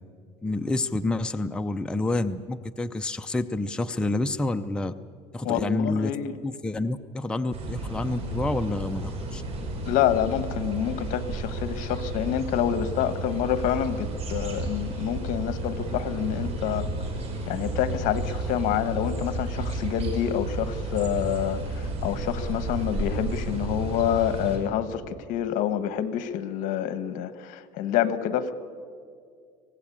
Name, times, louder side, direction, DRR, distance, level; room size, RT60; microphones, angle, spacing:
voice 1, 0.4-4.9 5.3-6.1 6.4-9.4, left 2 dB, 5° left, 7 dB, 0.6 m, -28 dB
voice 2, 5.4-6.3 9.8-16.9 17.5-28.5, left 10 dB, 65° left, 12 dB, 1.4 m, -27 dB
sound 1, 7.5-24.6, right 2 dB, 45° right, 5.0 m, -32 dB
25.0 x 18.0 x 8.6 m, 2.2 s
cardioid pair, 135°, 14 cm